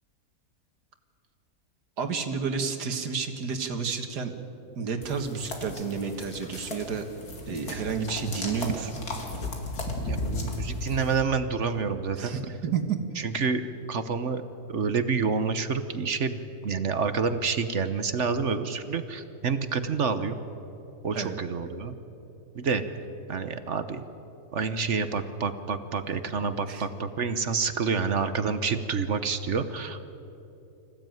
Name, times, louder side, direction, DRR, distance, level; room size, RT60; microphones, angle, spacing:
voice 1, 2.0-4.3 4.8-7.1 7.5-8.9 12.2-13.0 21.1-21.4 26.7-26.9, right 6 dB, 85° right, 6 dB, 2.1 m, -30 dB
sound 1, 5.0-11.2, left 2 dB, 70° left, 3.0 m, -35 dB
voice 2, 10.0-12.5 13.2-13.6 13.9-14.4 14.7-20.4 21.0-21.9 22.5-22.8 23.3-24.0 24.5-30.0, right 5 dB, 50° right, 10 dB, 1.2 m, -28 dB
25.5 x 15.5 x 9.2 m, 2.9 s
omnidirectional pair, 1.7 m